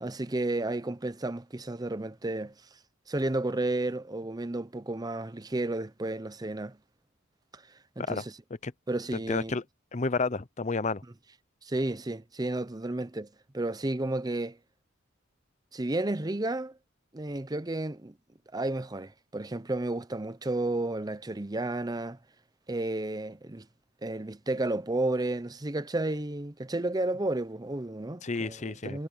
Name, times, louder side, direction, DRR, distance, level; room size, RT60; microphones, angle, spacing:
voice 1, 0.0-2.5 3.1-6.8 7.5-7.6 8.0-8.3 8.9-9.6 11.6-13.3 13.5-14.6 15.7-16.7 17.1-18.1 18.5-22.2 22.7-23.7 24.0-29.1, right 2 dB, 20° right, 0.7 m, -32 dB
voice 2, 9.1-9.6 9.9-11.0 28.2-29.1, left 3 dB, 35° left, 0.8 m, -31 dB
head